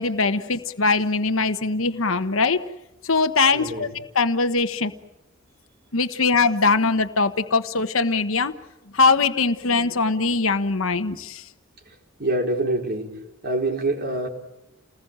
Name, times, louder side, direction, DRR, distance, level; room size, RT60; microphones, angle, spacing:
voice 1, 0.0-2.6 3.0-4.9 5.9-8.5 8.9-11.5, left 4 dB, 75° left, 9 dB, 1.2 m, -21 dB
voice 2, 3.5-3.9 6.1-6.2 12.2-13.2 13.4-14.3, right 2 dB, 50° right, 2 dB, 4.5 m, -25 dB
29.5 x 20.0 x 8.9 m, 0.88 s
head